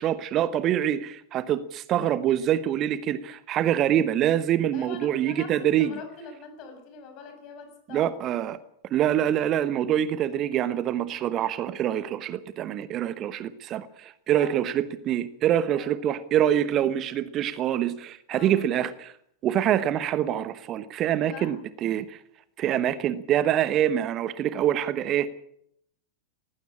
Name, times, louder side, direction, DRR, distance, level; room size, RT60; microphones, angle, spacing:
voice 1, 0.0-5.9 7.9-8.6 8.8-19.1 19.4-22.2 22.6-25.3, right 11 dB, 35° right, 15 dB, 1.0 m, -25 dB
voice 2, 4.7-8.1 14.3-14.6 15.7-15.9 18.3-18.6 21.2-21.5, left 5 dB, 40° left, 7 dB, 6.7 m, -43 dB
19.0 x 15.5 x 8.8 m, 0.72 s
figure-of-eight pair, 90°, 0 cm